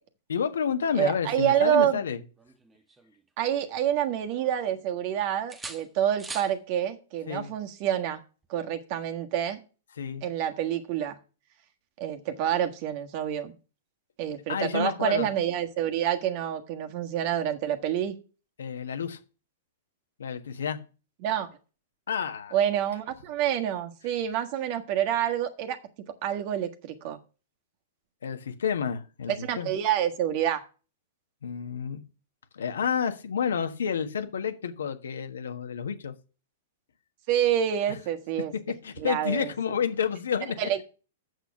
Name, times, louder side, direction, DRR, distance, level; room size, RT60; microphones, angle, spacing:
voice 1, 0.3-2.2 7.3-7.5 10.0-10.2 14.5-15.3 18.6-19.2 20.2-20.8 22.1-22.5 28.2-29.7 31.4-32.0 32.5-36.1 38.8-40.8, left 7 dB, 85° left, 7 dB, 1.4 m, -30 dB
voice 2, 1.0-2.0 3.4-8.2 8.5-9.6 10.2-11.2 12.0-13.5 14.2-18.1 21.2-21.5 22.5-25.8 26.2-27.2 29.4-30.6 37.3-38.5 39.0-39.5 40.6-40.8, right 10 dB, 50° right, 7 dB, 1.5 m, -27 dB
sound 1, 2.4-3.9 4.3-5.1 5.5-6.6 8.4-8.6, right 3 dB, 15° right, 1.1 m, -44 dB
8.0 x 6.4 x 5.9 m, 0.34 s
hypercardioid pair, 125°, 0 cm